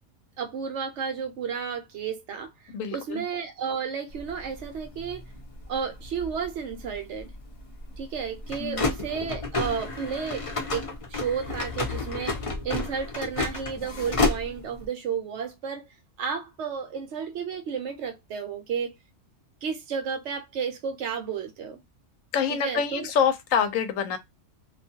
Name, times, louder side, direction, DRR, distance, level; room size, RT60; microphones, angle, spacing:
voice 1, 0.4-2.5 2.9-5.2 5.7-7.3 8.0-10.8 11.1-12.4 12.6-15.9 16.2-19.0 19.6-21.8 22.5-23.1, right 6 dB, 65° right, 0.9 m, -32 dB
voice 2, 2.7-3.2 8.6-8.9 22.3-24.2, left 7 dB, 85° left, 1.0 m, -26 dB
sound 1, 4.1-14.9, left 3 dB, 40° left, 0.5 m, -32 dB
2.4 x 2.3 x 2.7 m
omnidirectional pair, 1.4 m